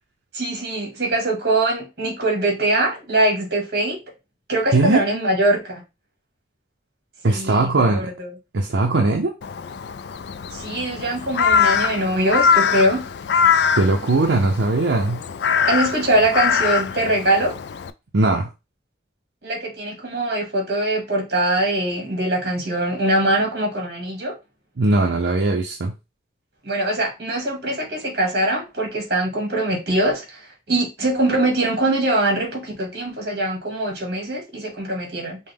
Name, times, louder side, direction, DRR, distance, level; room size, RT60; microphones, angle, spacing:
voice 1, 0.3-4.0 4.5-5.8 7.3-8.3 10.5-13.1 15.7-17.5 19.4-24.3 26.6-30.4 30.7-35.4, right 1 dB, 55° right, 1.8 m, -22 dB
voice 2, 7.2-8.1 8.5-9.3 13.8-15.2 18.1-18.5 24.8-25.9, right 2 dB, 80° right, 0.6 m, -19 dB
Crow, 9.4-17.9, left 7 dB, 65° left, 0.3 m, -22 dB
5.4 x 2.2 x 3.5 m
head